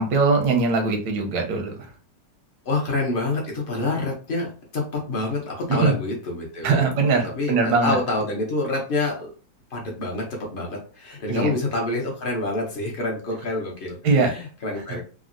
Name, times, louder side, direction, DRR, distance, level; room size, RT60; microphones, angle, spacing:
voice 1, 0.0-1.7 5.7-5.9 6.6-7.9 11.3-11.5 14.0-14.3, right 4 dB, 85° right, 3 dB, 1.3 m, -21 dB
voice 2, 2.6-6.9 7.2-9.3 9.7-10.2 10.5-15.0, left 2 dB, 65° left, -1 dB, 0.5 m, -27 dB
3.6 x 2.0 x 2.5 m, 0.39 s
omnidirectional pair, 1.9 m